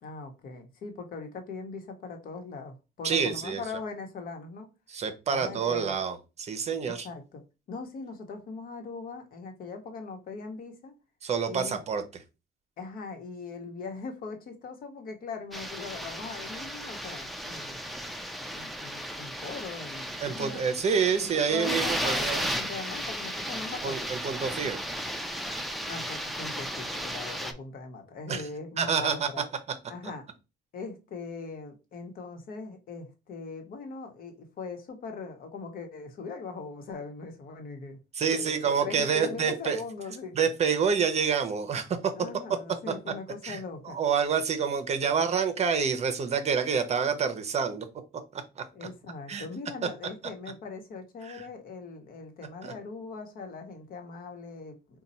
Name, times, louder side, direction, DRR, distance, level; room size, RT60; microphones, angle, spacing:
voice 1, 0.0-4.7 5.3-6.0 6.8-7.4 7.7-10.9 11.5-11.8 12.8-17.8 18.5-20.8 21.2-24.1 25.9-29.4 29.9-30.3 30.7-38.0 38.3-40.4 42.1-44.0 48.7-55.0, left 4 dB, 60° left, 1.1 m, -40 dB
voice 2, 3.0-3.6 4.9-7.1 11.2-12.0 20.2-22.5 23.8-24.8 28.3-28.5 28.8-29.3 38.1-39.8 40.3-42.1 42.9-43.0 43.4-43.6 43.8-47.9 48.3-48.6 49.3-49.5 51.2-51.5 52.6-52.7, right 6 dB, 40° right, 0.7 m, -28 dB
sound 1, 15.5-27.5, equal, ahead, 0.5 m, -35 dB
4.1 x 2.3 x 4.1 m
cardioid pair, 110°, 17 cm